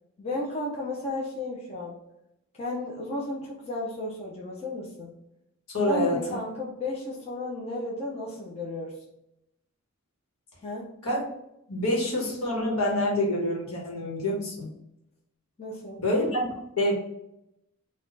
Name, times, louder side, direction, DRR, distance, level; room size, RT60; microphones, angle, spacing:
voice 1, 0.2-2.0 2.6-5.1 5.8-9.0 10.6-10.9 15.6-16.0, left 1 dB, 30° left, -4 dB, 0.8 m, -33 dB
voice 2, 5.7-6.3 11.0-11.2 11.7-14.7 16.0-16.9, left 1 dB, 75° left, -2 dB, 1.4 m, -27 dB
4.0 x 2.5 x 4.0 m, 0.84 s
head